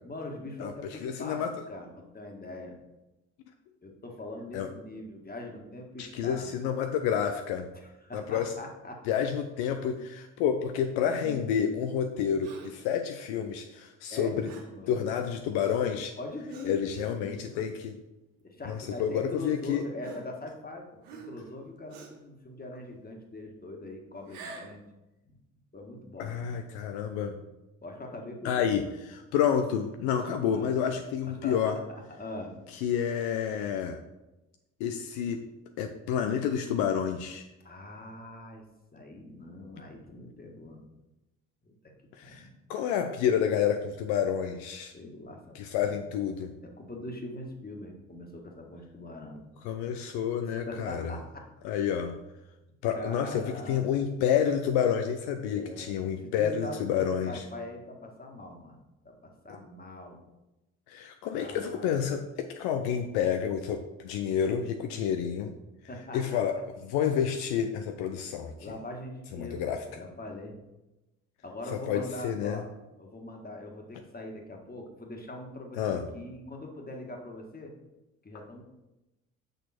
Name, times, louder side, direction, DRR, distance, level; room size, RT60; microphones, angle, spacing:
voice 1, 0.0-1.4 1.7-2.8 3.8-6.5 7.7-9.0 11.0-11.7 14.1-15.0 16.2-17.4 18.4-24.8 25.7-26.3 27.8-28.9 30.5-30.8 31.4-31.6 32.2-32.5 37.6-38.7 38.9-40.8 41.7-41.8 42.2-42.5 44.9-45.9 46.6-49.4 50.7-51.4 52.9-53.9 55.5-58.8 59.0-60.2 61.3-61.9 65.9-66.4 68.6-70.6 71.4-72.7 73.0-77.7 78.2-78.6, left 1 dB, 20° left, 2 dB, 1.8 m, -42 dB
voice 2, 0.6-1.5 4.5-4.7 6.0-7.7 8.1-8.6 9.1-14.5 14.9-16.2 16.6-18.0 18.7-19.8 26.2-27.4 28.4-31.8 32.7-34.0 34.8-35.4 35.8-37.5 42.1-44.9 45.5-46.5 49.6-51.1 51.6-52.2 52.8-57.4 60.9-65.5 66.1-68.5 69.3-69.8 71.9-72.6 75.7-76.1, left 8 dB, 65° left, 6 dB, 0.7 m, -29 dB
Gasp, 12.4-12.9 14.4-14.8 15.5-15.9 16.5-16.8 17.5-17.6 18.7-18.8 20.0-20.7 21.0-21.5 21.9-22.3 24.2-24.8, right 4 dB, 70° right, 1.6 m, -47 dB
6.6 x 6.2 x 4.3 m, 0.99 s
hypercardioid pair, 55°, 41 cm